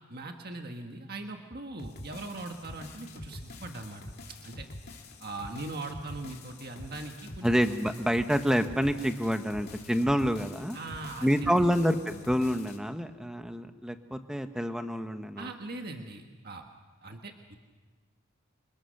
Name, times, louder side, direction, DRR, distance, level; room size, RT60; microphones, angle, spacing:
voice 1, 0.1-4.0 4.4-4.6 5.2-7.5 10.7-11.6 15.4-16.6 17.0-17.6, right 2 dB, 45° right, 3 dB, 1.6 m, -40 dB
sound 1, 1.8-12.8, left 1 dB, 50° left, 3.2 m, -46 dB
voice 2, 7.4-10.8 11.2-15.5, equal, 5° right, 7 dB, 1.1 m, -27 dB
28.5 x 26.5 x 6.6 m, 1.4 s
head